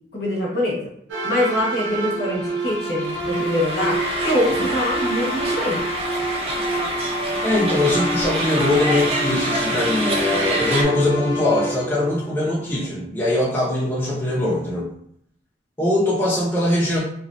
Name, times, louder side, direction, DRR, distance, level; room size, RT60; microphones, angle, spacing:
voice 1, 0.1-0.9 1.2-4.0 4.2-5.8, left 1 dB, 60° left, -5 dB, 1.1 m, -23 dB
sound 1, 1.1-12.9, equal, 85° right, 0.8 m, -27 dB
sound 2, 3.0-10.8, right 2 dB, 35° right, 0.5 m, -27 dB
voice 2, 7.4-14.9 15.8-17.0, left 1 dB, 10° left, -7 dB, 0.6 m, -21 dB
3.0 x 2.6 x 2.5 m, 0.68 s
head